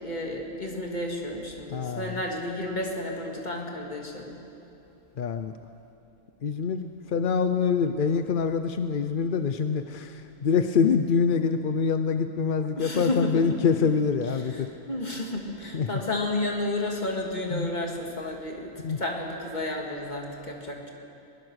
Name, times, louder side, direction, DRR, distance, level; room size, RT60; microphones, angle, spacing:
voice 1, 0.0-4.4 12.6-13.7 14.4-20.9, left 1 dB, 30° left, 0 dB, 2.6 m, -32 dB
voice 2, 1.7-2.2 5.2-5.5 6.4-14.7 15.7-15.9 17.5-17.9 18.8-19.0, left 6 dB, 50° left, 9 dB, 0.6 m, -25 dB
22.0 x 20.0 x 6.4 m, 2.7 s
omnidirectional pair, 1.5 m